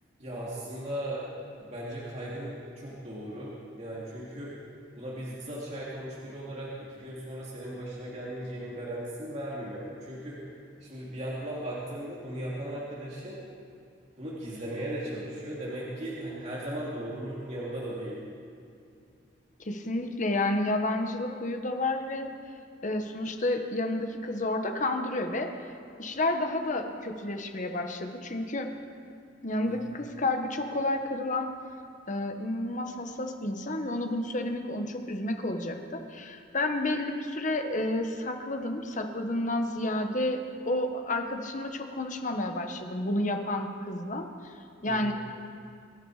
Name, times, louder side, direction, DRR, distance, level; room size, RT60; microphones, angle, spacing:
voice 1, 0.2-1.3 1.6-4.6 5.0-10.4 10.8-13.4 14.2-18.2 29.6-29.9 44.8-45.1, right 1 dB, 40° right, -6 dB, 2.8 m, -37 dB
voice 2, 19.6-22.3 22.8-25.5 26.0-28.7 29.4-31.5 32.1-44.5 44.8-45.1, left 1 dB, 45° left, 5 dB, 1.4 m, -30 dB
24.0 x 11.5 x 5.0 m, 2.4 s
head